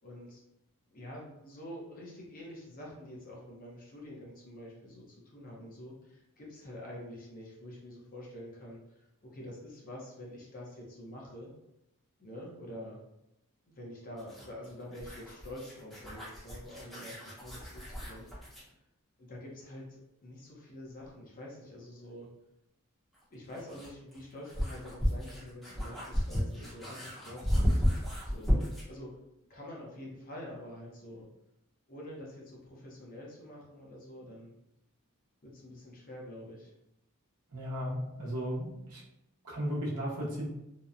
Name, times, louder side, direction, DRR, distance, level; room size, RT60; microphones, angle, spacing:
voice 1, 0.0-0.4 0.9-11.5 12.2-13.0 13.7-18.6 19.2-22.3 23.3-27.7 28.2-29.1 29.5-31.3 31.9-34.5 35.4-36.7, left 1 dB, 40° left, -3 dB, 0.7 m, -47 dB
sound 1, 14.2-18.7 21.1-21.2 23.1-29.0, equal, ahead, 0.7 m, -33 dB
voice 2, 37.5-39.0 39.4-40.5, equal, 75° right, -4 dB, 0.8 m, -35 dB
2.8 x 2.1 x 2.4 m, 0.85 s
head